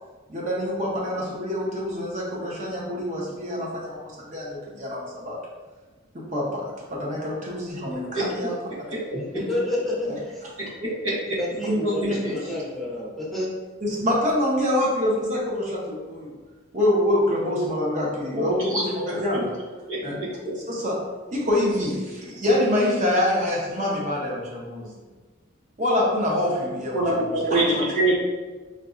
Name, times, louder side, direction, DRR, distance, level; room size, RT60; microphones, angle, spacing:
voice 1, 0.3-5.4 6.3-8.5 9.4-9.5 10.0-10.2 11.7-12.2 13.8-16.3 16.7-19.6 20.0-20.2 20.7-21.0 21.3-25.0 25.8-28.2, left 1 dB, 35° right, -4 dB, 0.8 m, -26 dB
voice 2, 9.1-10.4 11.3-13.5, left 1 dB, ahead, -6 dB, 0.7 m, -29 dB
voice 3, 10.8-11.1 12.0-12.1 18.6-19.4 19.9-20.5 26.9-28.2, right 2 dB, 80° right, -6 dB, 1.2 m, -25 dB
3.7 x 2.8 x 2.5 m, 1.3 s
head